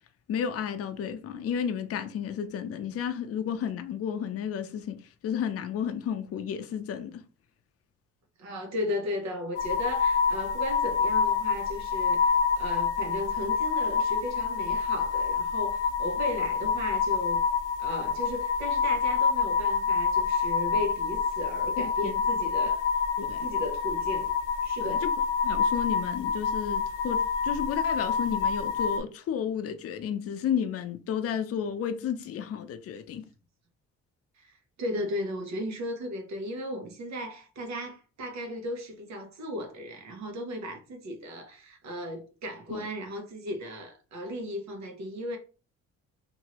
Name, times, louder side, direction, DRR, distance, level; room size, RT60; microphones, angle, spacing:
voice 1, 0.3-5.0 5.2-7.2 21.8-22.1 23.2-23.5 24.8-25.1 25.4-33.3 42.7-42.9, left 8 dB, 50° left, 0.5 m, -32 dB
voice 2, 8.4-17.5 17.8-22.9 23.4-24.3 24.6-25.0 34.4-45.4, left 1 dB, 65° right, 1.1 m, -36 dB
sound 1, 9.5-29.0, left 6 dB, 85° left, 0.8 m, -27 dB
2.8 x 2.6 x 2.9 m
cardioid pair, 90°, 30 cm